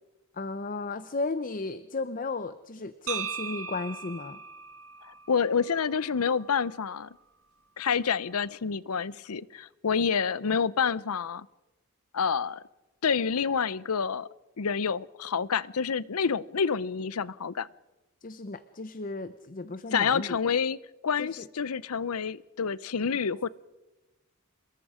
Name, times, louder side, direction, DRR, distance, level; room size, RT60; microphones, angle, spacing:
voice 1, 0.3-4.4 18.2-20.4 21.2-21.5, left 3 dB, 40° left, 12 dB, 0.7 m, -34 dB
sound 1, 3.1-7.1, right 6 dB, 70° right, 1.8 m, -39 dB
voice 2, 5.0-7.1 7.8-11.5 12.1-12.6 13.0-14.3 14.6-17.7 19.9-20.8 21.0-23.5, left 6 dB, 80° left, 20 dB, 0.6 m, -28 dB
27.0 x 22.0 x 5.0 m, 1.1 s
head